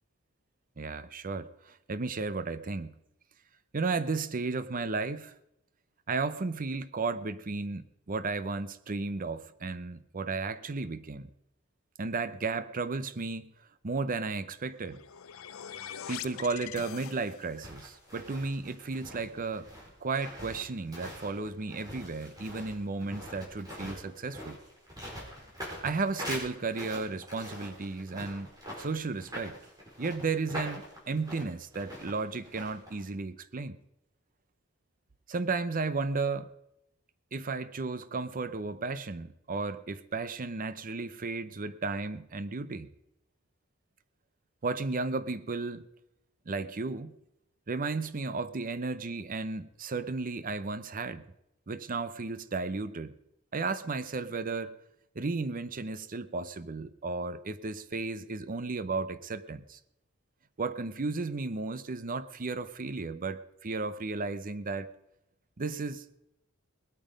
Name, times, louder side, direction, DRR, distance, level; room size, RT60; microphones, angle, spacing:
voice 1, 0.8-2.9 3.7-5.3 6.1-11.3 12.0-13.5 13.8-15.0 16.1-19.7 20.0-24.6 25.8-28.5 28.8-29.6 30.0-33.8 35.3-36.5 37.3-42.9 44.6-45.9 46.5-47.1 47.7-51.2 51.7-53.1 53.5-54.8 55.1-59.8 60.6-64.9 65.6-66.1, right 3 dB, 40° right, 0.7 m, -34 dB
sound 1, 14.7-17.7, left 9 dB, 80° left, 0.6 m, -43 dB
sound 2, 17.6-33.0, equal, 20° right, 4.4 m, -43 dB
20.0 x 8.9 x 5.2 m
head